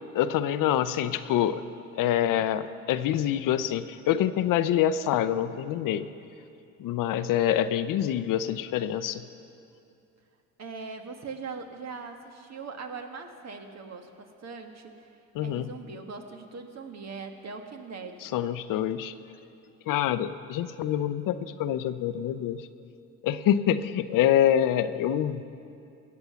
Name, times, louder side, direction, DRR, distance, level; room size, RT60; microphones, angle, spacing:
voice 1, 0.1-1.6 2.0-6.1 6.8-9.2 15.3-15.7 18.2-19.1 19.9-22.7 23.2-25.4, left 10 dB, 65° left, 12 dB, 0.7 m, -26 dB
voice 2, 10.6-15.1 15.4-18.3, right 4 dB, 50° right, 5 dB, 1.5 m, -41 dB
17.5 x 7.8 x 6.9 m, 2.6 s
supercardioid pair, 75°, 35 cm